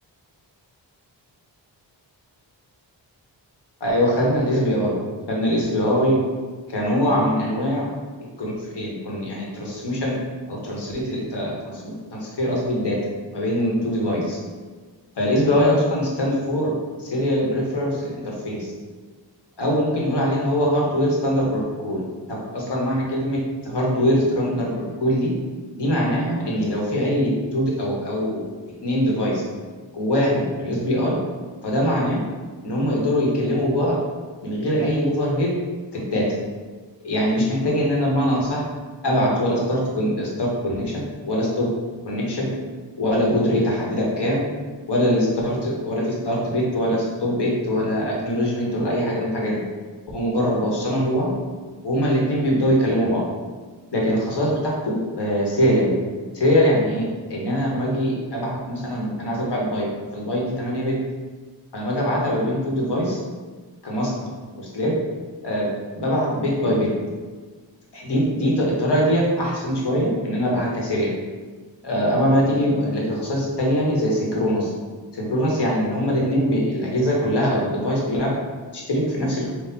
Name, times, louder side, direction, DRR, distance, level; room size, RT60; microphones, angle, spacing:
voice 1, 3.8-5.0 5.3-6.2 6.7-7.8 8.4-10.2 10.5-13.0 13.3-14.4 15.2-16.7 17.0-18.7 19.6-22.0 22.3-23.4 23.6-24.7 25.0-25.3 25.8-28.4 28.8-29.4 29.9-31.1 31.6-32.2 32.6-34.0 34.4-35.5 35.9-36.3 37.0-38.6 39.0-40.8 41.2-41.7 42.0-42.5 43.0-44.4 44.9-49.6 50.1-51.3 51.8-53.2 53.9-55.9 56.3-57.0 57.3-59.8 60.1-60.9 61.7-63.2 63.8-64.1 64.6-64.9 65.4-65.7 66.0-66.9 67.9-71.1 71.8-74.7 75.1-78.3 78.9-79.5, equal, 60° left, -3 dB, 1.4 m, -22 dB
4.3 x 2.5 x 4.0 m, 1.4 s
cardioid pair, 70°, 45 cm